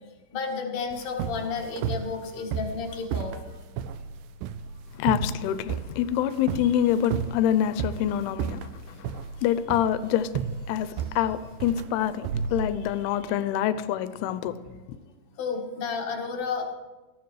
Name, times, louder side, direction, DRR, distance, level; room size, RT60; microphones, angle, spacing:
voice 1, 0.3-3.4 15.4-16.7, left 5 dB, 50° left, -1 dB, 2.5 m, -31 dB
sound 1, 0.9-13.1, right 7 dB, 90° right, 2.0 m, -33 dB
voice 2, 4.9-8.6 9.0-9.1 9.4-10.3 10.7-14.6, left 10 dB, 90° left, 12 dB, 2.6 m, -26 dB
19.5 x 14.0 x 3.2 m, 1.3 s
omnidirectional pair, 4.5 m